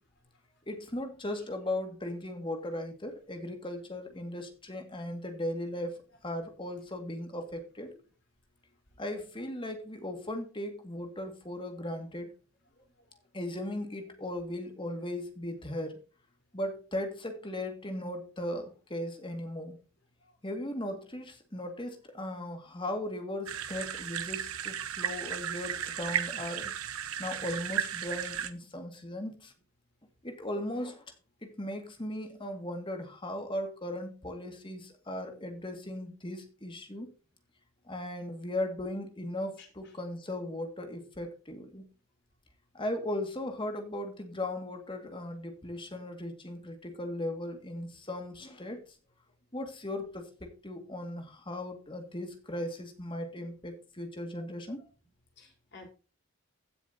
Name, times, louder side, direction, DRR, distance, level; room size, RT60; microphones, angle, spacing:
voice 1, 0.7-6.0 6.2-7.9 9.0-12.3 13.3-16.0 16.5-19.8 20.4-26.7 27.2-29.5 30.2-31.0 31.4-37.1 37.9-41.9 42.7-48.8 49.5-54.8, left 1 dB, 25° left, 5 dB, 2.0 m, -37 dB
sound 1, 23.5-28.5, right 9 dB, 85° right, 0.9 m, -35 dB
voice 2, 39.6-39.9 54.3-54.5 54.8-54.9 55.4-55.9, left 3 dB, 55° left, 2 dB, 4.0 m, -54 dB
16.0 x 6.9 x 2.8 m, 0.35 s
head